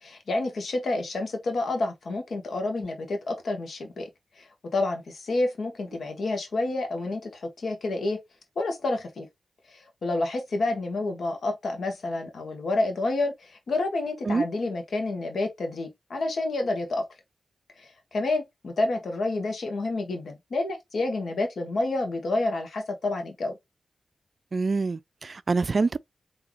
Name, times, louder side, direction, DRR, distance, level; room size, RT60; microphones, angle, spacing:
voice 1, 0.0-4.1 4.4-8.2 8.6-9.3 9.7-17.0 17.8-23.5, left 2 dB, 75° left, 1.2 m, -29 dB
voice 2, 24.5-26.0, right 4 dB, 55° right, 0.3 m, -25 dB
3.7 x 2.8 x 3.1 m
cardioid pair, 40°, 0 cm